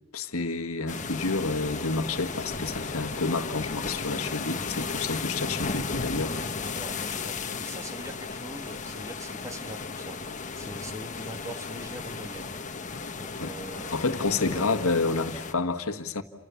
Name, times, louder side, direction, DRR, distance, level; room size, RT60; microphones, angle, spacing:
voice 1, 0.1-6.4 13.4-13.5 13.9-16.2, left 3 dB, 70° left, 1.6 m, -29 dB
sound 1, 0.9-15.5, left 4 dB, 35° left, 1.4 m, -35 dB
voice 2, 6.7-10.2 10.5-12.6 13.2-14.6, right 1 dB, 15° right, 1.9 m, -42 dB
29.5 x 27.5 x 7.2 m
head